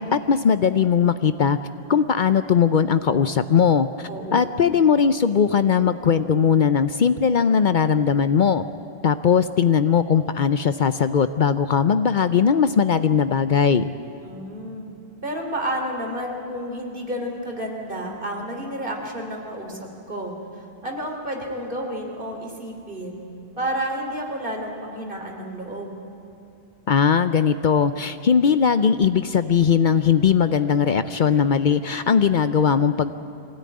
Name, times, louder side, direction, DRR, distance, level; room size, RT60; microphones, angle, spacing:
voice 1, 0.0-1.6 1.9-8.6 9.0-13.9 26.9-33.1, left 7 dB, 55° left, 11 dB, 0.7 m, -19 dB
voice 2, 4.1-4.6 14.2-14.9 15.2-23.2 23.6-25.9, right 1 dB, 60° right, 1 dB, 3.4 m, -31 dB
23.0 x 17.0 x 9.6 m, 2.8 s
omnidirectional pair, 1.0 m